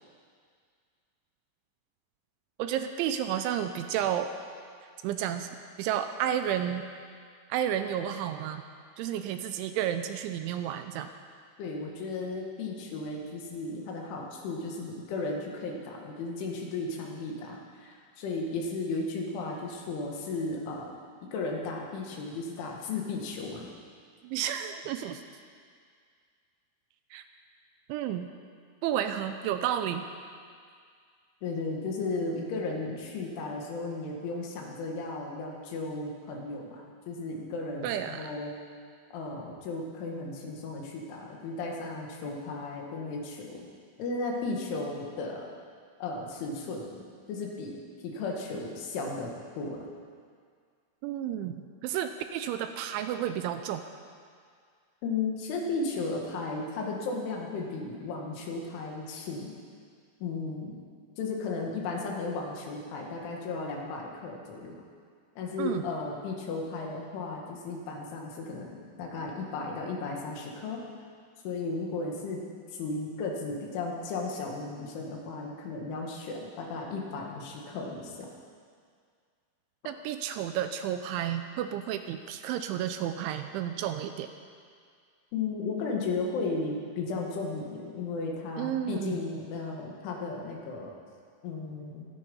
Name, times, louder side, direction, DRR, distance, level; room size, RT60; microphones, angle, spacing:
voice 1, 2.6-4.3 5.0-6.8 7.5-8.6 9.0-11.1 24.2-25.2 27.1-27.2 27.9-28.3 28.8-30.1 37.8-38.3 51.0-53.8 65.6-65.8 79.9-84.3 88.6-89.2, right 10 dB, 80° right, 8 dB, 2.9 m, -31 dB
voice 2, 11.6-20.9 21.3-23.7 31.4-38.6 39.1-43.7 44.0-45.5 46.0-47.0 47.3-47.7 48.0-49.8 55.0-59.5 60.2-60.8 61.2-64.8 65.4-70.8 71.4-72.4 72.7-78.3 85.3-90.9 91.4-92.1, left 3 dB, 75° left, -1 dB, 4.3 m, -35 dB
25.0 x 10.0 x 5.5 m, 2.1 s
omnidirectional pair, 5.6 m